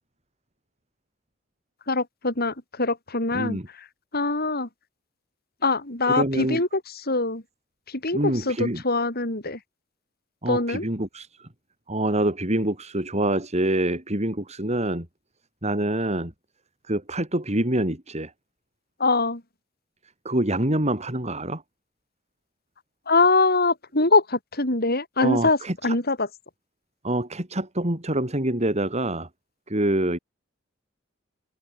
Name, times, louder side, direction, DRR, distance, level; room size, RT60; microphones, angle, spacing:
voice 1, 1.9-3.6 4.1-4.7 5.6-6.7 7.1-7.4 8.0-9.6 10.5-10.8 19.0-19.4 23.1-25.6 25.8-26.3, left 3 dB, 50° left, 6.3 m, -23 dB
voice 2, 3.3-3.7 6.1-6.6 8.1-8.8 10.4-11.5 11.9-15.1 15.6-16.3 16.9-18.3 20.2-21.6 25.2-26.0 27.0-29.3 29.7-30.2, right 1 dB, 35° right, 4.5 m, -26 dB
open air
head